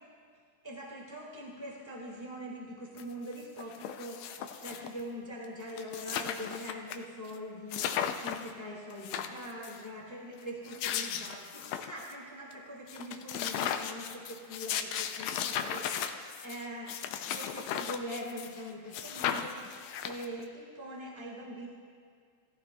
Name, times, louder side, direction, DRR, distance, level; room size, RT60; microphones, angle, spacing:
voice 1, 0.6-19.6 20.0-21.7, equal, 10° left, -3 dB, 1.0 m, -43 dB
sound 1, 3.0-3.1 3.3-5.0 5.4-5.5 5.7-7.0 7.3-7.4 7.7-8.5 8.9-9.8 10.5-12.1 12.5-12.6 12.9-18.6 18.9-20.4, left 9 dB, 80° left, 1.5 m, -36 dB
18.0 x 14.5 x 2.3 m, 2.1 s
omnidirectional pair, 3.6 m